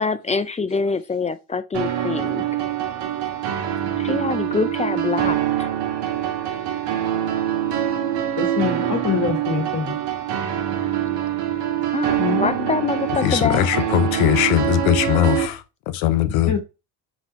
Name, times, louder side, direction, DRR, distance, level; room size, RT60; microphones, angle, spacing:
voice 1, 0.0-2.4 4.0-5.7 9.1-9.2 11.9-13.7, left 4 dB, 15° left, 0.3 m, -25 dB
sound 1, 1.7-15.5, right 11 dB, 65° right, 1.1 m, -24 dB
voice 2, 8.4-10.0 12.2-12.8 15.3-15.5 16.5-16.6, left 6 dB, 40° left, 1.2 m, -25 dB
voice 3, 13.2-15.6 15.9-16.5, left 12 dB, 75° left, 0.8 m, -20 dB
5.2 x 3.0 x 2.9 m
supercardioid pair, 75°, 46 cm